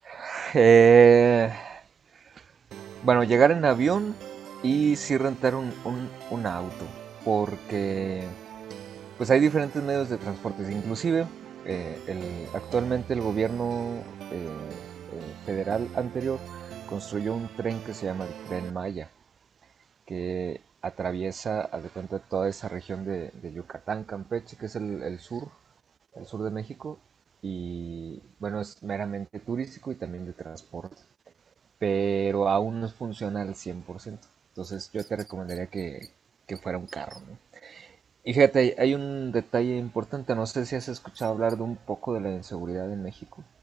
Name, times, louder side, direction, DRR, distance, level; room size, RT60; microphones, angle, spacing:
voice 1, 0.1-1.8 2.2-2.4 3.0-4.2 4.6-7.0 7.2-8.4 9.2-11.3 11.6-14.8 15.1-16.4 16.9-19.1 20.1-25.5 26.1-27.0 27.4-30.9 31.8-34.2 34.6-36.1 36.5-37.4 37.6-37.9 38.2-43.2, right 7 dB, 50° right, 1.4 m, -27 dB
sound 1, 2.7-18.7, right 11 dB, 70° right, 1.9 m, -43 dB
sound 2, 34.6-36.1 36.5-36.6 36.9-37.2 40.8-41.6 42.0-42.1, right 4 dB, 30° right, 2.1 m, -51 dB
cardioid pair, 90°, 0 cm